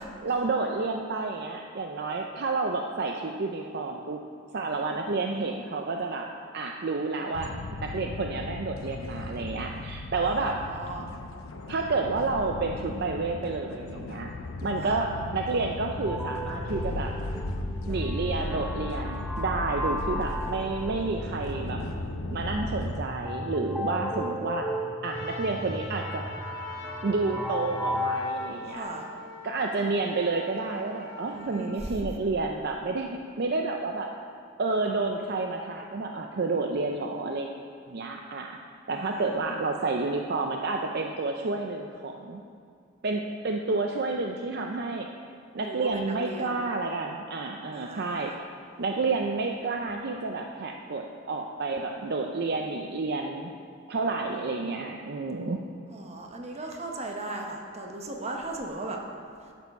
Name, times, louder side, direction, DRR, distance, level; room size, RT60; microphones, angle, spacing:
voice 1, 0.2-4.2 4.5-6.3 6.5-7.5 7.8-10.5 11.7-14.3 14.6-17.1 17.9-21.8 22.3-24.7 25.0-26.2 27.0-28.8 29.4-34.1 34.6-37.5 37.9-38.6 38.9-42.4 43.0-45.1 45.5-48.5 48.8-53.5 53.9-55.6, right 3 dB, 50° right, 2 dB, 0.5 m, -30 dB
sound 1, 7.3-23.0, left 2 dB, 90° left, 0.6 m, -37 dB
voice 2, 10.3-11.1 14.8-15.0 21.3-21.6 28.7-29.1 31.3-32.0 38.9-39.4 45.6-46.6 47.7-48.4 54.3-54.4 55.9-59.0, right 2 dB, 30° right, 1 dB, 1.0 m, -38 dB
sound 2, 16.0-28.3, equal, ahead, 0.6 m, -35 dB
Trumpet, 25.1-31.6, left 2 dB, 60° left, 1.6 m, -43 dB
10.5 x 7.0 x 5.4 m, 2.3 s
head